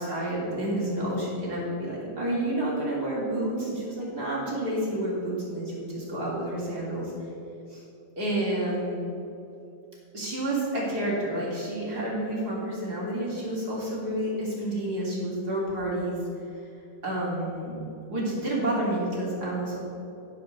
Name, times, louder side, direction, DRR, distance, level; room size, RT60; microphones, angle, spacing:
voice 1, 0.0-7.1 7.7-7.8 8.2-9.0 10.1-16.2 17.0-17.8 18.1-19.8, right 1 dB, 60° right, -5 dB, 3.8 m, -29 dB
16.0 x 5.5 x 6.8 m, 2.7 s
omnidirectional pair, 1.9 m